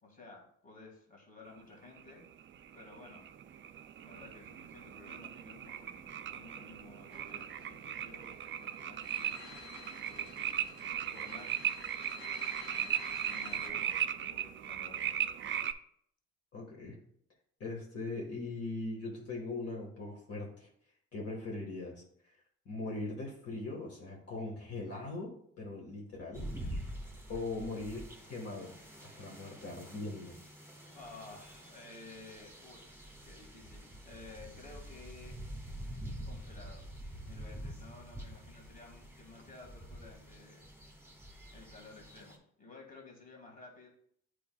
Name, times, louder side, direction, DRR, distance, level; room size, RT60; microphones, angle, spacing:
voice 1, 0.0-2.2 2.7-3.3 4.0-9.5 10.1-12.3 12.7-15.1 30.9-35.4 36.3-36.8 37.2-40.7 41.5-43.9, left 3 dB, 30° left, -1 dB, 2.0 m, -54 dB
sound 1, 2.0-15.7, right 9 dB, 40° right, 0.4 m, -38 dB
sound 2, 7.1-13.7, left 5 dB, 80° left, 2.3 m, -51 dB
voice 2, 16.5-17.0 17.6-20.7 21.1-22.0 22.6-26.5 27.3-28.7 29.0-30.4, left 2 dB, 50° left, -2 dB, 1.7 m, -40 dB
sound 3, 26.3-42.4, equal, 10° right, 1.4 m, -47 dB
8.4 x 4.8 x 2.3 m, 0.65 s
cardioid pair, 90°, 30 cm